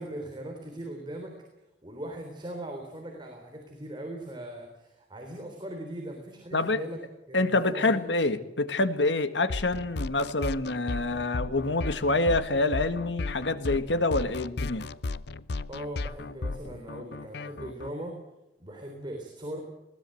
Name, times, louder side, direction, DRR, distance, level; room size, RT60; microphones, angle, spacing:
voice 1, 0.0-1.4 1.8-7.0 7.3-8.1 15.7-18.2 18.6-19.6, right 1 dB, 25° right, 2 dB, 3.6 m, -39 dB
voice 2, 7.3-14.9, left 2 dB, 80° left, 11 dB, 1.7 m, -26 dB
sound 1, 9.5-17.9, left 3 dB, 65° left, 0.7 m, -35 dB
21.0 x 18.0 x 7.8 m, 0.95 s
head